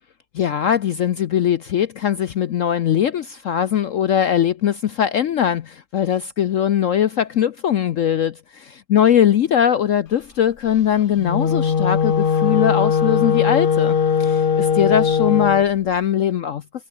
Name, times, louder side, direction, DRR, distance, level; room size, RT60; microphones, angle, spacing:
voice 1, 0.3-16.6, left 9 dB, 70° left, 0.7 m, -20 dB
Wind instrument woodwind instrument, 11.1-15.7, left 6 dB, 40° left, 0.8 m, -19 dB
omnidirectional pair, 2.1 m